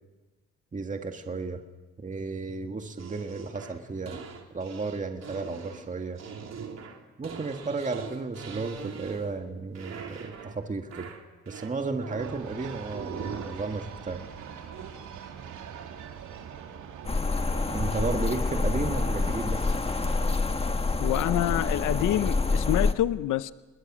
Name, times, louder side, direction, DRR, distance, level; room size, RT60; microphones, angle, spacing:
voice 1, 0.7-1.6 2.0-4.2 4.5-6.2 7.2-11.1 11.5-14.2 17.7-19.7, right 3 dB, 25° right, 5 dB, 1.8 m, -33 dB
sound 1, 3.0-9.5 9.7-10.6 10.9-12.5 12.9-13.6 14.7-14.9, right 6 dB, 60° right, 3.4 m, -42 dB
sound 2, 12.2-20.3, right 7 dB, 80° right, 2.8 m, -43 dB
sound 3, 17.1-22.9, left 3 dB, 20° left, 1.4 m, -27 dB
voice 2, 21.0-23.5, left 14 dB, 85° left, 15 dB, 0.7 m, -27 dB
29.5 x 20.5 x 6.2 m, 1.2 s
cardioid pair, 90°, 30 cm